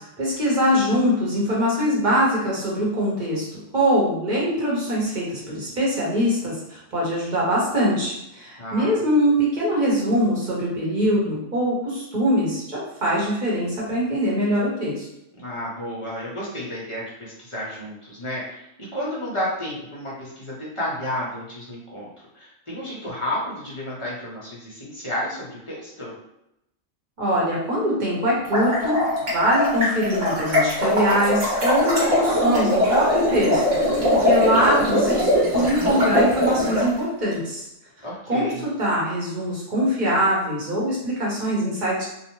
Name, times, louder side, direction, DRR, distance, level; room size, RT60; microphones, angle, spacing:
voice 1, 0.0-3.5 3.7-15.1 27.2-29.0 29.3-37.7 38.3-42.1, equal, 45° right, -5 dB, 0.9 m, -23 dB
voice 2, 8.6-9.0 15.4-22.1 22.3-26.1 38.0-38.6, left 1 dB, 35° left, -7 dB, 0.6 m, -31 dB
sound 1, 28.3-36.8, left 1 dB, 80° right, 1.3 m, -21 dB
2.7 x 2.0 x 2.9 m, 0.84 s
omnidirectional pair, 1.3 m